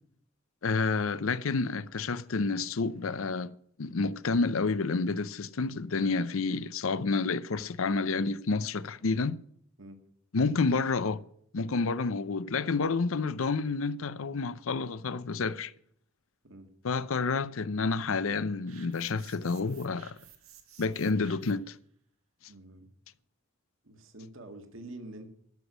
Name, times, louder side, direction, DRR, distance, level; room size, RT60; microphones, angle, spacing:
voice 1, 0.6-3.5 3.8-9.4 10.3-11.2 11.5-15.7 16.8-20.2 20.8-21.8, left 4 dB, 75° left, 0.6 m, -29 dB
sound 1, 18.7-21.7, right 9 dB, 90° right, 1.9 m, -55 dB
voice 2, 22.5-22.9 23.8-25.3, right 1 dB, 65° right, 1.8 m, -46 dB
13.0 x 6.2 x 9.5 m
head